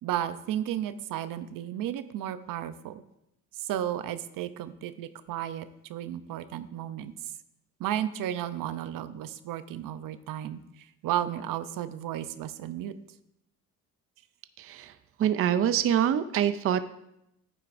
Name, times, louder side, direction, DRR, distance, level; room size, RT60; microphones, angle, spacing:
voice 1, 0.0-3.0 3.6-7.1 7.8-10.6 11.0-12.9, right 11 dB, 80° right, 12 dB, 0.6 m, -33 dB
voice 2, 14.6-14.9 15.2-16.8, right 9 dB, 45° right, 12 dB, 0.4 m, -25 dB
11.0 x 9.4 x 2.5 m, 0.81 s
cardioid pair, 130°, 33 cm